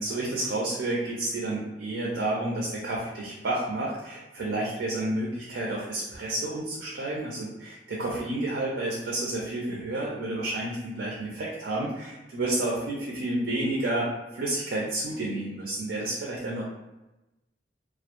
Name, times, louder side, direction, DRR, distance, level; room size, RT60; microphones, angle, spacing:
voice 1, 0.0-16.6, right 2 dB, 75° right, -3 dB, 0.4 m, -30 dB
2.3 x 2.0 x 2.8 m, 1.0 s
head